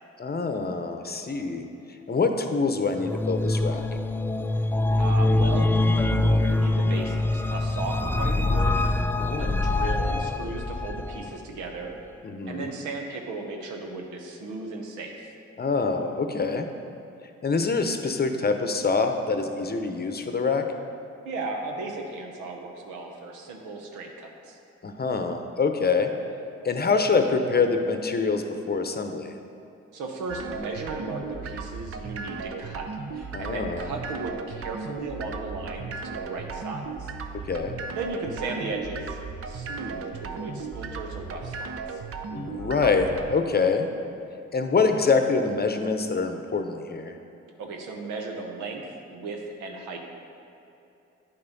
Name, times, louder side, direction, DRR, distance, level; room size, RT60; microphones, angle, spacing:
voice 1, 0.2-1.7 2.1-3.8 9.2-9.6 12.2-12.7 15.6-16.7 17.4-20.6 24.8-26.1 26.6-29.4 33.3-33.9 37.5-37.8 42.3-43.9 44.5-47.2, left 4 dB, 35° left, 6 dB, 0.8 m, -25 dB
sound 1, 3.0-11.3, left 2 dB, 10° left, 0.3 m, -24 dB
voice 2, 5.0-8.8 9.4-12.0 12.5-15.3 21.2-24.6 29.9-37.1 37.9-39.2 39.5-42.0 47.6-50.0, right 3 dB, 85° right, 2 dB, 0.9 m, -36 dB
sound 2, 30.3-43.4, right 5 dB, 50° right, 0.7 m, -36 dB
9.8 x 5.5 x 4.0 m, 2.8 s
supercardioid pair, 50°, 30 cm